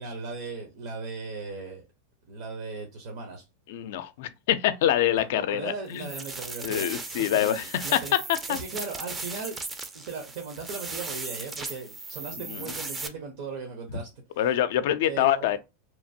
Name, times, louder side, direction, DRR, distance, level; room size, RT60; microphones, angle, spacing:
voice 1, 0.0-1.9 2.2-3.4 5.2-8.1 8.5-9.6 9.9-14.4 15.0-15.5, right 4 dB, 70° right, 0.9 m, -38 dB
voice 2, 3.7-6.1 6.6-7.7 7.9-8.2 8.5-8.6 12.3-12.7 14.4-15.6, left 11 dB, 70° left, 0.4 m, -25 dB
sound 1, 5.9-13.1, right 3 dB, 15° right, 0.4 m, -37 dB
2.9 x 2.1 x 2.6 m
supercardioid pair, 130°, 0 cm